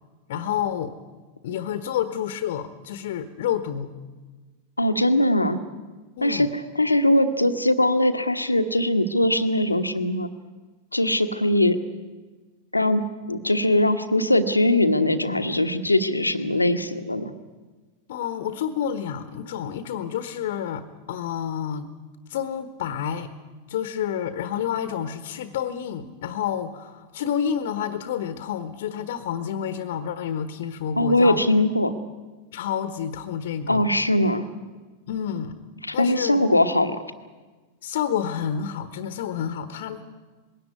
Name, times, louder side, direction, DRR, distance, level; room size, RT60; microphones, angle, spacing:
voice 1, 0.3-0.9 1.4-3.9 6.2-6.5 18.1-21.9 22.3-23.3 23.7-31.4 32.5-33.9 35.1-35.6 35.9-36.4 37.8-40.0, left 9 dB, 55° left, 11 dB, 1.3 m, -29 dB
voice 2, 4.8-5.6 6.2-6.5 6.8-10.3 10.9-11.8 12.7-13.0 13.3-17.3 31.0-31.9 33.7-34.5 35.9-37.0, left 1 dB, 85° left, 9 dB, 1.3 m, -21 dB
21.0 x 17.0 x 9.5 m, 1.3 s
figure-of-eight pair, 90°, 0 cm